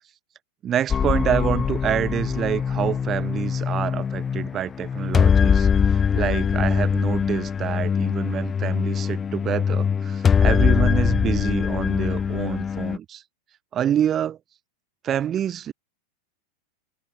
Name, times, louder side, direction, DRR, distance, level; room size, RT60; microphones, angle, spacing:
voice 1, 0.6-5.7 6.2-13.2 13.7-14.4 15.0-15.7, right 10 dB, 30° right, 1.9 m, -27 dB
sound 1, 0.9-13.0, left 7 dB, 25° left, 1.7 m, -22 dB
open air
figure-of-eight pair, 90°, 0 cm